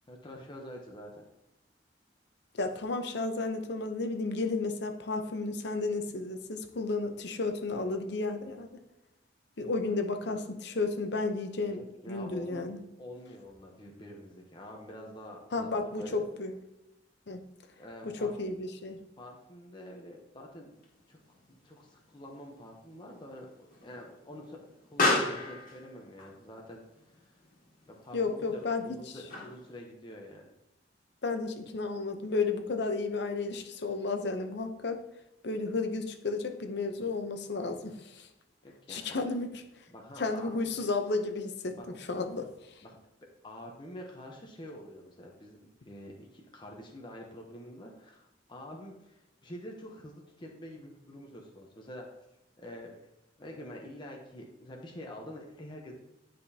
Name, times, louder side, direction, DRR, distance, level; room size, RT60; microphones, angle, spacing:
voice 1, 0.1-1.2 11.7-12.6 13.0-16.2 17.8-18.4 19.2-20.7 21.1-27.3 27.9-30.5 38.6-39.2 39.9-40.5 41.7-42.0 42.8-43.0 43.4-52.1 52.6-53.0 53.4-55.9, left 1 dB, 25° left, 0 dB, 0.9 m, -47 dB
voice 2, 2.5-8.7 9.6-11.8 12.1-12.8 15.5-16.5 17.3-17.4 18.0-19.0 28.1-28.8 31.2-35.0 35.4-38.3 38.9-39.5 40.2-42.5, left 3 dB, 65° left, 6 dB, 0.8 m, -32 dB
Explosion, 20.8-29.8, left 2 dB, 50° left, 1.8 m, -36 dB
10.0 x 5.1 x 2.8 m, 0.89 s
head